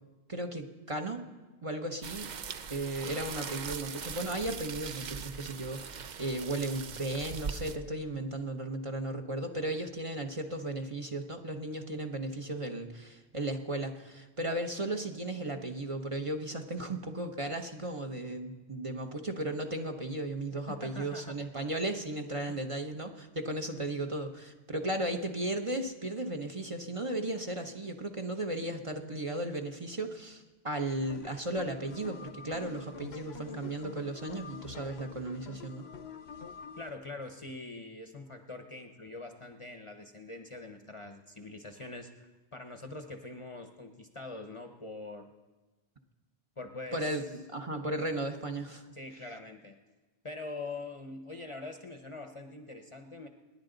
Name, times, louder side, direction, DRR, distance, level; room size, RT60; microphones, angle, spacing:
voice 1, 0.3-1.2 1.6-2.3 2.7-35.9 46.9-48.9, right 1 dB, 35° right, 4 dB, 0.9 m, -35 dB
sound 1, 2.0-7.8, right 6 dB, 55° right, 0.6 m, -41 dB
voice 2, 20.5-21.4 22.5-22.6 36.8-45.3 46.6-47.2 48.9-49.8 50.2-53.3, left 2 dB, 35° left, 5 dB, 0.8 m, -44 dB
sound 2, 30.9-36.9, left 6 dB, 80° left, 1.1 m, -46 dB
26.5 x 10.5 x 3.9 m, 1.2 s
omnidirectional pair, 1.0 m